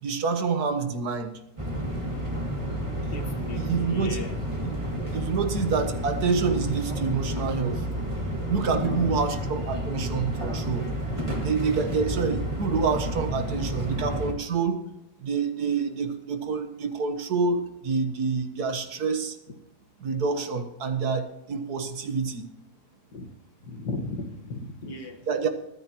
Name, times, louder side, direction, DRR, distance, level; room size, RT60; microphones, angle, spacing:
voice 1, 0.0-1.3 3.5-4.2 4.7-4.8 5.1-7.9 8.5-10.9 11.4-14.8 15.2-19.4 20.0-22.5 25.3-25.5, right 5 dB, 70° right, 7 dB, 1.8 m, -27 dB
sound 1, 1.6-14.3, right 1 dB, 20° right, 2.1 m, -30 dB
voice 2, 3.1-4.3 8.7-9.2 23.1-23.3 23.6-25.2, left 3 dB, 75° left, 4 dB, 2.1 m, -35 dB
24.0 x 9.5 x 3.0 m, 0.90 s
omnidirectional pair, 1.8 m